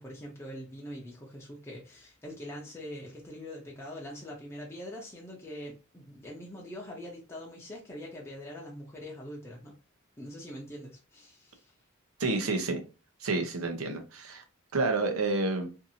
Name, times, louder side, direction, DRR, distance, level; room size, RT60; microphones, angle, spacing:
voice 1, 0.0-9.7 10.2-11.7, equal, 15° left, 0.6 m, -43 dB
voice 2, 12.2-12.8 13.2-14.4 14.7-15.7, right 3 dB, 80° right, 0.7 m, -29 dB
2.7 x 2.5 x 2.7 m
head